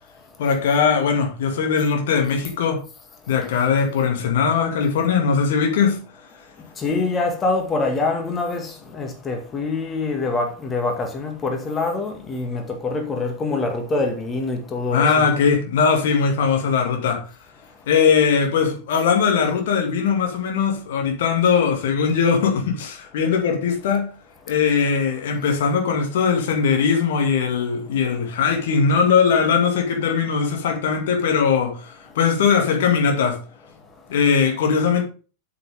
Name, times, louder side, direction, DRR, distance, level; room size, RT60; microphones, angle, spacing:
voice 1, 0.4-2.8 3.3-6.0 14.9-17.2 17.9-24.1 24.5-33.4 34.1-35.0, left 6 dB, 55° left, 2.4 m, -20 dB
voice 2, 6.8-15.3, left 3 dB, 20° left, 2.1 m, -25 dB
8.4 x 7.8 x 3.7 m
figure-of-eight pair, 90°, 0 cm